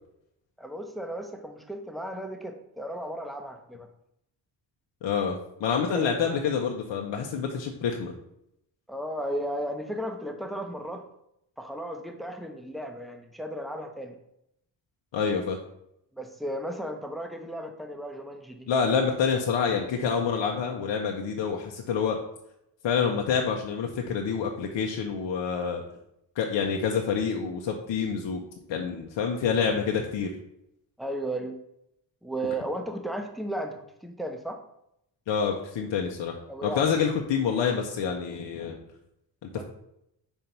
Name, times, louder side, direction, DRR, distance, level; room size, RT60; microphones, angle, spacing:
voice 1, 0.6-3.9 5.8-6.1 8.9-11.0 11.6-14.2 16.1-18.7 31.0-31.6 32.2-34.6 36.5-37.1 39.5-39.6, right 1 dB, ahead, 4 dB, 0.9 m, -35 dB
voice 2, 5.0-8.1 15.1-15.6 18.7-22.2 22.8-25.8 26.4-28.4 28.7-30.3 35.3-38.8 39.4-39.6, left 6 dB, 70° left, 1 dB, 0.9 m, -27 dB
4.5 x 4.4 x 5.4 m, 0.78 s
cardioid pair, 100°, 45 cm